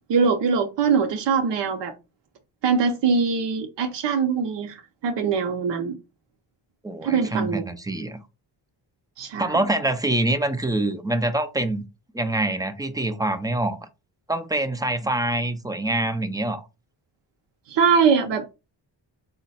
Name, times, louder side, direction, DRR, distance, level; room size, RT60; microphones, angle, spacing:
voice 1, 0.1-1.9 2.6-5.9 7.0-7.7 9.2-9.6 17.7-18.4, right 5 dB, 70° right, 0.7 m, -22 dB
voice 2, 6.8-8.2 9.4-11.8 12.1-13.9 14.3-16.6, right 1 dB, 10° right, 0.3 m, -25 dB
3.8 x 2.2 x 4.0 m
cardioid pair, 110°, 43 cm